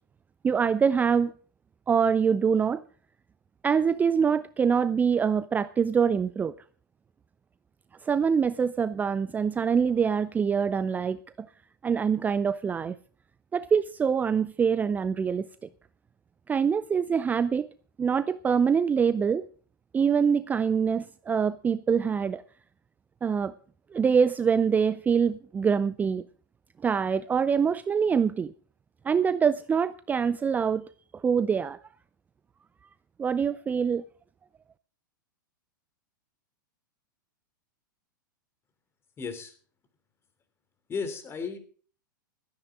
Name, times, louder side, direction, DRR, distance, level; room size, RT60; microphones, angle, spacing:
voice 1, 0.4-1.3 1.9-2.8 3.6-6.5 8.0-11.5 11.8-13.0 13.5-15.5 16.5-17.7 18.0-19.5 19.9-22.4 23.2-23.5 23.9-26.2 26.8-28.5 29.0-31.8 33.2-34.0, right 6 dB, 15° right, 0.5 m, -25 dB
voice 2, 39.2-39.5 40.9-41.6, left 5 dB, 20° left, 3.2 m, -34 dB
16.0 x 13.5 x 3.8 m
figure-of-eight pair, 100°, 11 cm